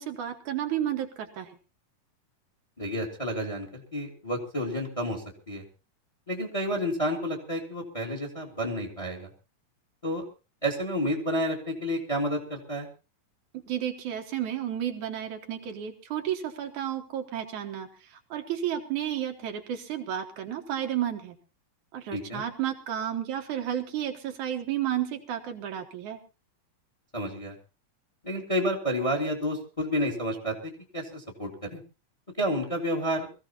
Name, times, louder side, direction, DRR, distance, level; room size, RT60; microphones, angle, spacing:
voice 1, 0.0-1.6 13.7-21.4 21.9-26.2, right 10 dB, 70° right, 4 dB, 2.6 m, -32 dB
voice 2, 2.8-5.6 6.3-9.3 10.0-10.2 10.6-12.9 22.1-22.4 27.1-27.5 28.2-31.8 32.4-33.3, equal, 10° left, 3 dB, 1.8 m, -30 dB
23.0 x 15.0 x 2.9 m, 0.31 s
omnidirectional pair, 3.8 m